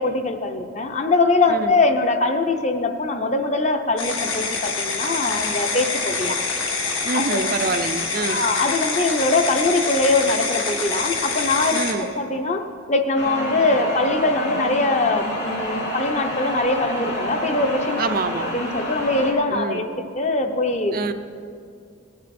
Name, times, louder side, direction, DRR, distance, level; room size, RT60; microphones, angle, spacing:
voice 1, 0.0-6.4 7.1-7.4 8.3-18.0 18.5-21.0, left 2 dB, 35° left, 6 dB, 0.7 m, -22 dB
sound 1, 4.0-11.9, left 4 dB, 90° left, 1.9 m, -26 dB
voice 2, 7.0-8.4 11.7-12.1 18.0-18.5 19.5-19.8 20.9-21.1, right 3 dB, 45° right, 8 dB, 0.5 m, -26 dB
sound 2, 13.1-19.3, equal, 70° left, 4.0 m, -28 dB
18.0 x 10.5 x 4.3 m, 2.4 s
head